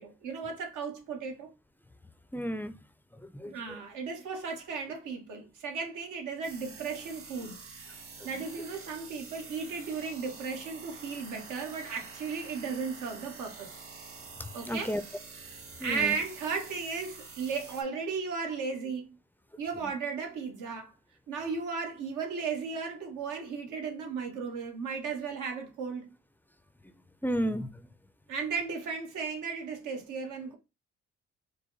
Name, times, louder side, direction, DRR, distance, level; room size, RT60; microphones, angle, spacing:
voice 1, 0.0-1.5 3.4-7.6 8.2-13.8 14.5-14.9 15.4-19.1 19.6-20.9 21.3-26.1 28.3-30.6, right 5 dB, 80° right, 1.4 m, -35 dB
voice 2, 2.3-2.8 3.2-3.5 14.4-15.0 15.8-16.2 27.2-27.7, equal, 5° left, 0.4 m, -32 dB
sound 1, 6.4-17.8, right 4 dB, 45° right, 1.6 m, -47 dB
4.7 x 2.2 x 3.9 m
cardioid pair, 90°, 30 cm